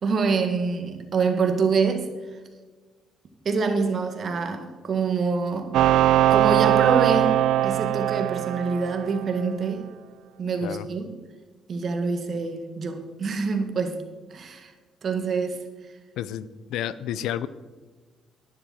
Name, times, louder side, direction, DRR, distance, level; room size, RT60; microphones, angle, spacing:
voice 1, 0.0-2.1 3.4-5.8 6.3-9.8 10.4-11.1 11.7-14.0 14.3-14.7 15.0-15.6, right 4 dB, 50° right, 1.8 m, -26 dB
sound 1, 5.7-9.4, right 12 dB, 85° right, 0.3 m, -21 dB
voice 2, 16.2-17.5, left 11 dB, 90° left, 0.5 m, -31 dB
11.0 x 10.0 x 4.3 m
cardioid pair, 100°, 0 cm